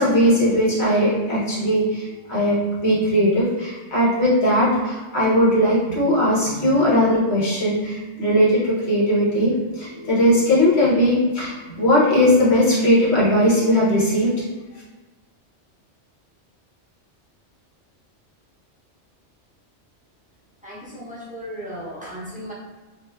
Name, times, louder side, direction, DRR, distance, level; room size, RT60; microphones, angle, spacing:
voice 1, 0.0-14.3, equal, 65° left, -7 dB, 1.2 m, -19 dB
voice 2, 20.6-22.5, equal, 10° right, -8 dB, 0.4 m, -35 dB
3.1 x 2.6 x 2.2 m, 1.2 s
omnidirectional pair, 1.2 m